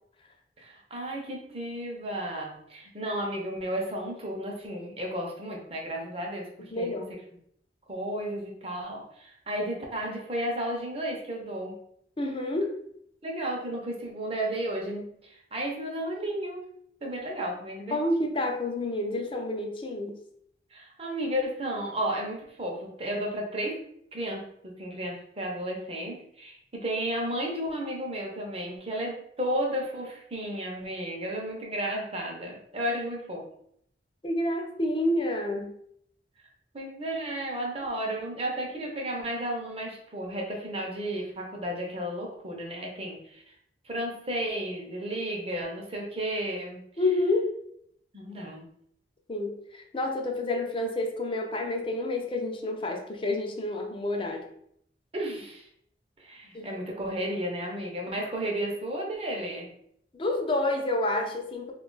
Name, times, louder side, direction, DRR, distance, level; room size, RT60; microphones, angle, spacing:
voice 1, 0.6-6.5 6.7-6.9 7.9-11.8 13.2-16.7 17.0-18.0 20.7-23.8 24.1-33.4 36.7-43.4 43.8-46.8 48.1-48.6 55.1-55.7 56.2-59.7, right 1 dB, 35° right, 0 dB, 0.7 m, -33 dB
voice 2, 6.7-7.1 12.2-12.7 17.9-20.1 34.2-35.7 47.0-47.4 49.3-54.4 56.5-56.7 60.1-61.7, left 2 dB, 30° left, 2 dB, 0.5 m, -29 dB
2.8 x 2.4 x 3.8 m, 0.70 s
head